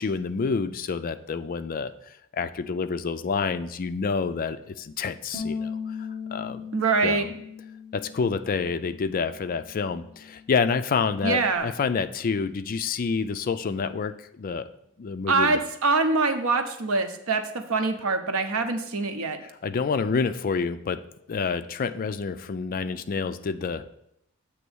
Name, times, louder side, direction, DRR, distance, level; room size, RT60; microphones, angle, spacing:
voice 1, 0.0-1.9 2.3-6.0 6.3-6.6 7.0-7.3 7.9-14.7 15.0-15.6 19.6-21.0 21.3-23.9, left 5 dB, 45° left, 11 dB, 0.4 m, -28 dB
Bass guitar, 5.3-11.6, left 5 dB, 5° left, 1.3 m, -39 dB
voice 2, 6.7-7.3 11.2-11.7 15.3-19.4, right 3 dB, 85° right, 7 dB, 0.8 m, -24 dB
7.9 x 3.1 x 6.1 m, 0.77 s
head